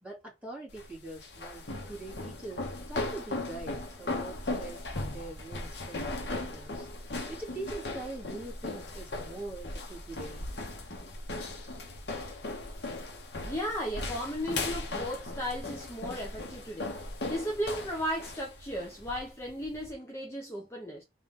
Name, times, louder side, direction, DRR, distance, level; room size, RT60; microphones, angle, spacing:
voice 1, 0.0-6.9 7.3-10.5 13.1-13.2, right 2 dB, 10° right, 2.6 m, -43 dB
sound 1, 0.7-19.9, left 2 dB, 65° left, 1.2 m, -38 dB
voice 2, 13.4-21.0, equal, 15° left, 0.9 m, -35 dB
3.7 x 3.3 x 3.6 m
head